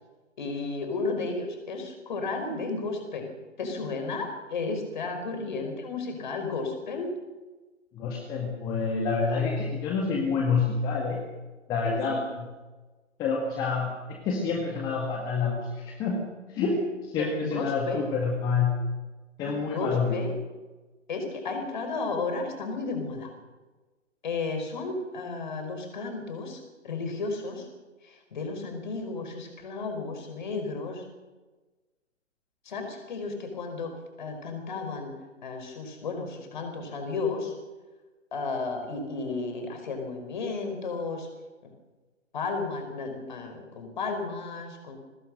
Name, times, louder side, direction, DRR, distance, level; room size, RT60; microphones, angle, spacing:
voice 1, 0.4-3.3 3.6-7.1 11.8-12.2 17.2-18.0 19.4-20.4 21.1-23.3 24.2-27.7 28.0-31.0 32.6-35.2 35.4-37.5 38.3-41.3 41.6-41.7 42.3-45.0, left 3 dB, 40° left, 5 dB, 5.1 m, -33 dB
voice 2, 7.9-11.2 11.7-12.2 13.2-13.9 14.2-16.2 16.5-18.7 19.4-20.1, left 5 dB, 10° left, 0 dB, 1.8 m, -27 dB
23.0 x 19.0 x 6.3 m, 1.2 s
figure-of-eight pair, 140°, 38 cm